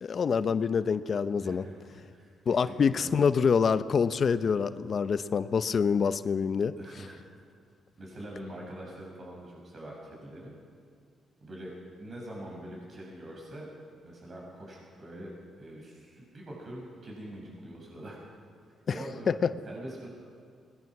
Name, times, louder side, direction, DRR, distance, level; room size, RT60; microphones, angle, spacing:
voice 1, 0.0-1.7 2.5-6.7 19.3-19.5, left 6 dB, 55° left, 13 dB, 0.8 m, -26 dB
voice 2, 1.4-3.2 6.8-7.2 8.0-10.5 11.4-11.7 12.0-13.7 14.0-15.3 15.6-18.2 18.9-19.4 19.7-20.1, right 1 dB, 50° right, -2 dB, 6.9 m, -44 dB
21.5 x 20.5 x 6.1 m, 2.1 s
supercardioid pair, 55°, 0 cm